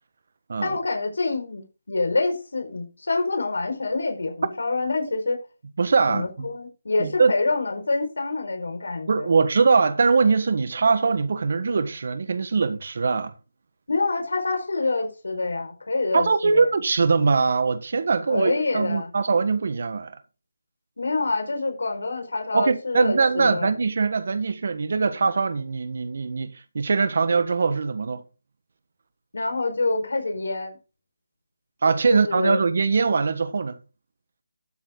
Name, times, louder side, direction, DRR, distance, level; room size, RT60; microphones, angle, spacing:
voice 1, 0.6-5.4 6.1-9.4 13.9-16.7 18.3-19.1 21.0-23.7 29.3-30.8 32.1-32.6, left 3 dB, 70° left, 4.8 m, -26 dB
voice 2, 5.8-6.5 7.0-7.3 9.1-13.3 16.1-20.1 22.5-28.2 31.8-33.8, right 4 dB, 40° right, 1.4 m, -22 dB
13.0 x 7.4 x 3.9 m
hypercardioid pair, 175°, 0 cm